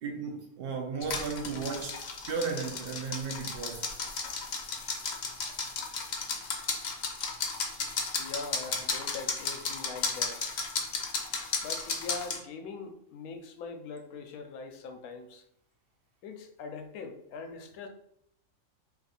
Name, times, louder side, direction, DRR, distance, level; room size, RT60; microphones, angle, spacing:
voice 1, 0.0-2.0 2.3-3.9, right 5 dB, 70° right, 0.5 m, -35 dB
sound 1, 1.0-12.4, left 4 dB, 60° left, 0.8 m, -34 dB
voice 2, 8.2-10.4 11.6-15.4 16.2-17.9, left 4 dB, 90° left, 1.0 m, -42 dB
2.7 x 2.5 x 4.0 m
omnidirectional pair, 1.5 m